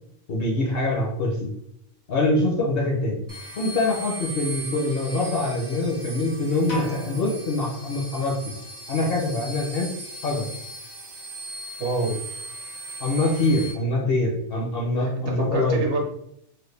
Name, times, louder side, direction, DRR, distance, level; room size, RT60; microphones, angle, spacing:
voice 1, 0.3-1.5 2.1-3.3 3.6-8.4 8.9-9.9 10.2-10.5 13.0-15.8, left 2 dB, 60° left, -1 dB, 0.7 m, -24 dB
sound 1, 3.3-13.7, right 2 dB, 35° right, 0.4 m, -38 dB
sound 2, 6.7-8.6, left 1 dB, 85° left, 1.5 m, -36 dB
voice 2, 11.8-12.4 15.0-16.0, right 3 dB, 60° right, 0 dB, 0.9 m, -27 dB
3.1 x 2.1 x 3.2 m, 0.74 s
omnidirectional pair, 1.4 m